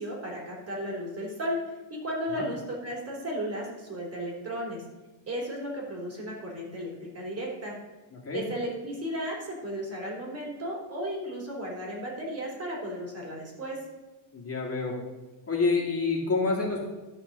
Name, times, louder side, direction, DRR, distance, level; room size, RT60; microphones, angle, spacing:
voice 1, 0.0-4.8 5.3-7.7 8.3-13.8, equal, 30° right, -2 dB, 3.6 m, -34 dB
voice 2, 8.1-8.4 14.3-15.0 15.5-16.8, left 4 dB, 30° left, -3 dB, 2.5 m, -28 dB
13.0 x 4.4 x 6.7 m, 1.2 s
cardioid pair, 100°, 45 cm